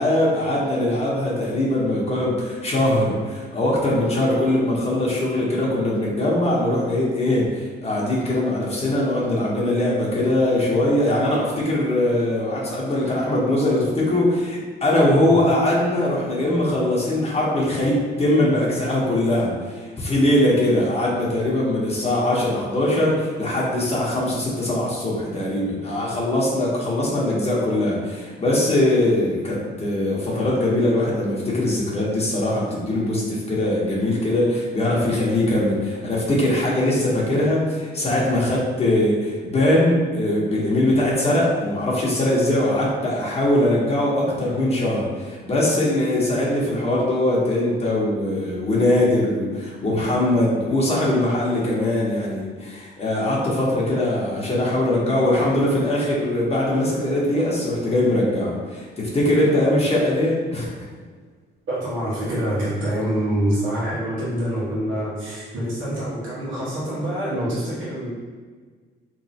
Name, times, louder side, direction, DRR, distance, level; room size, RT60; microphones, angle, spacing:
voice 1, 0.0-60.7, left 1 dB, 30° left, -5 dB, 1.0 m, -21 dB
voice 2, 61.7-68.1, right 1 dB, 80° right, -9 dB, 1.5 m, -26 dB
3.6 x 3.1 x 2.8 m, 1.5 s
cardioid pair, 90°, 20 cm